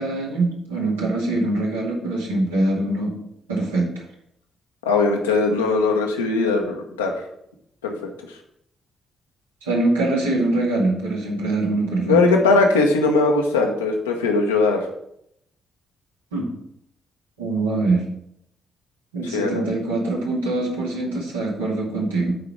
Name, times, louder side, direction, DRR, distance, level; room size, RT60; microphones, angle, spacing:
voice 1, 0.0-3.2 3.5-3.9 9.6-12.2 16.3-16.5 17.4-18.1 19.1-22.3, right 2 dB, 80° right, -4 dB, 2.3 m, -23 dB
voice 2, 4.8-7.1 7.8-7.9 8.3-8.4 12.0-14.9 19.3-19.6, left 3 dB, 75° left, 2 dB, 1.1 m, -19 dB
8.7 x 4.9 x 6.1 m, 0.74 s
figure-of-eight pair, 40°, 0 cm